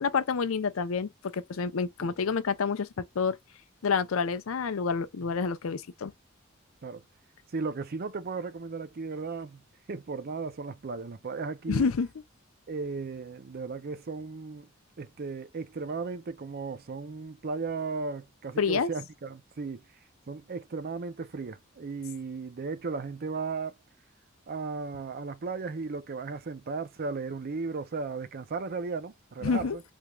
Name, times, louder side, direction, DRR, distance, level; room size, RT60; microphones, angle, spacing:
voice 1, 0.0-3.4 3.8-6.1 11.7-12.1 18.6-18.9 29.4-29.8, left 5 dB, 90° left, 0.5 m, -28 dB
voice 2, 7.5-9.6 9.9-11.9 12.7-14.7 15.0-19.8 20.3-23.8 24.5-29.8, right 4 dB, 50° right, 0.5 m, -35 dB
3.5 x 3.0 x 2.2 m
head